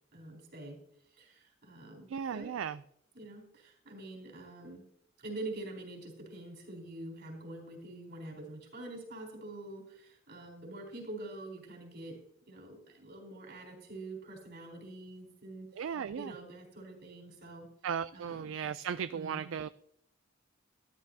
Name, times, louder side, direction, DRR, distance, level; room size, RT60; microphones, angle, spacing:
voice 1, 0.1-0.8 1.1-2.5 3.1-4.8 5.2-12.2 12.5-17.7 18.1-18.5 19.1-19.5, right 2 dB, 60° right, 0 dB, 4.2 m, -46 dB
voice 2, 2.1-2.8 15.8-16.3 17.8-19.7, right 7 dB, 75° right, 14 dB, 0.4 m, -36 dB
13.5 x 12.5 x 2.8 m, 0.71 s
head